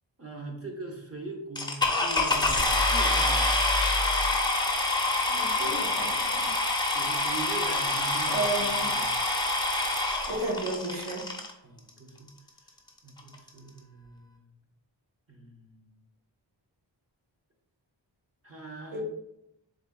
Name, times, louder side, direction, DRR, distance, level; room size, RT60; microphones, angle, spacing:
voice 1, 0.2-3.6 6.9-9.1 11.6-12.3 13.0-14.4 15.3-16.0 18.4-19.0, right 3 dB, 30° right, 0 dB, 1.1 m, -41 dB
sound 1, 1.6-11.5 12.3-12.4 12.9-13.0 13.2-13.5, left 2 dB, 10° left, 0.6 m, -26 dB
voice 2, 5.1-6.5 8.3-8.9 10.3-11.2 18.9-19.0, right 2 dB, 90° right, -5 dB, 1.7 m, -33 dB
3.7 x 3.5 x 3.8 m, 0.82 s
wide cardioid pair, 105°, 46 cm